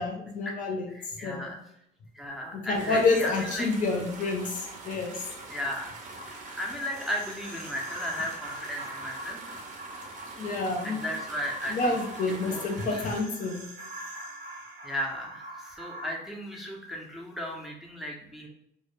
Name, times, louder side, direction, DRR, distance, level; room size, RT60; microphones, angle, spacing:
voice 1, 0.0-0.9 1.2-1.5 2.5-5.3 10.4-11.0 11.7-13.7, left 3 dB, 50° left, 2 dB, 0.6 m, -28 dB
voice 2, 0.9-1.6 2.1-3.7 5.5-5.9 6.2-9.4 10.8-12.0 12.4-12.6 12.9-13.0 14.8-18.5, equal, ahead, -2 dB, 0.5 m, -35 dB
sound 1, 2.7-13.2, right 3 dB, 50° right, 0.6 m, -44 dB
sound 2, 6.1-16.1, right 1 dB, 90° right, 0.8 m, -43 dB
2.1 x 2.1 x 3.0 m, 0.77 s
cardioid pair, 110°, 17 cm